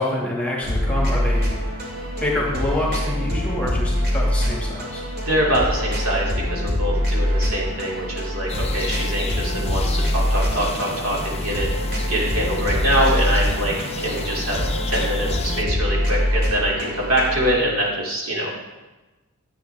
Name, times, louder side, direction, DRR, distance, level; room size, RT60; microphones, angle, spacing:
voice 1, 0.0-1.5 2.2-5.0, left 1 dB, 5° left, -4 dB, 2.1 m, -26 dB
sound 1, 0.6-17.5, equal, 45° right, 2.6 m, -24 dB
voice 2, 5.2-11.7 12.1-14.6 14.9-18.5, right 1 dB, 75° right, -4 dB, 2.9 m, -24 dB
sound 2, 8.5-15.6, left 4 dB, 30° left, 0.5 m, -33 dB
11.5 x 8.6 x 3.5 m, 1.1 s
head